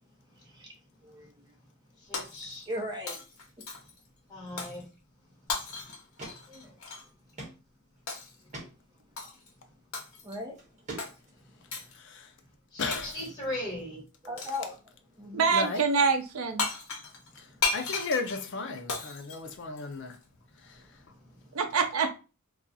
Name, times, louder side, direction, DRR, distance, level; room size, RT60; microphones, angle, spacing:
voice 1, 2.0-2.7 4.3-4.9 12.7-14.0, left 1 dB, 20° left, 1.4 m, -37 dB
Shatter, 2.1-2.8 3.1-4.0 4.6-4.8 5.5-7.1 8.1-8.4 9.2-9.5 9.9-10.4 11.0-11.1 11.7-12.0 12.9-13.4 14.4-14.7 16.3-16.4 16.6-20.2, left 4 dB, 80° left, 0.9 m, -36 dB
voice 2, 2.7-3.2 6.5-6.6 9.2-9.3 10.2-10.6 14.2-14.8 15.2-15.5, left 1 dB, 20° right, 0.7 m, -36 dB
sound 1, 6.2-6.4 6.7-6.8 7.4-7.6 8.0-8.1 8.5-8.7 9.8-10.0 10.6-11.4, right 2 dB, 35° right, 1.1 m, -42 dB
voice 3, 12.0-12.3 12.8-13.1 15.5-15.8 17.7-20.2, left 3 dB, 55° left, 0.5 m, -34 dB
voice 4, 15.3-16.7 21.5-22.1, right 5 dB, 75° right, 0.5 m, -25 dB
2.4 x 2.3 x 3.9 m
head